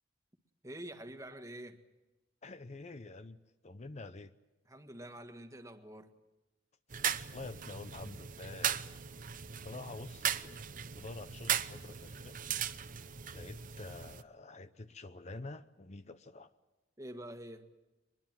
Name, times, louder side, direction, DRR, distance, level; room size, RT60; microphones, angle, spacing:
voice 1, 0.6-1.8 4.7-6.1 17.0-17.7, right 1 dB, 15° right, 7 dB, 1.6 m, -46 dB
voice 2, 2.4-3.4 3.6-4.3 7.3-9.0 9.5-10.6 10.9-12.4 13.3-16.5, left 2 dB, 35° left, 11 dB, 0.7 m, -47 dB
sound 1, 6.9-14.2, right 9 dB, 45° right, 0.8 m, -38 dB
23.5 x 21.5 x 7.6 m, 1.1 s
head